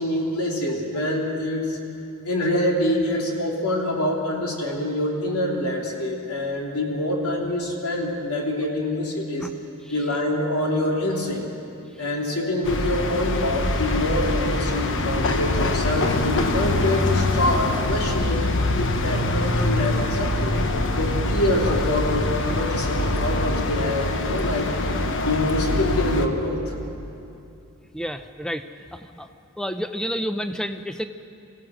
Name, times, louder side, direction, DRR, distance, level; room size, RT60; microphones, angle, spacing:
voice 1, 0.0-1.8 2.2-9.5 9.9-11.5 12.0-20.5 21.0-24.7 25.3-26.8, left 1 dB, 80° left, -1 dB, 3.4 m, -25 dB
sound 1, 12.6-26.3, left 2 dB, 60° left, 1.2 m, -24 dB
voice 2, 27.9-28.6 28.9-29.3 29.6-31.1, equal, 5° left, 8 dB, 0.7 m, -29 dB
25.5 x 16.5 x 6.4 m, 2.7 s
head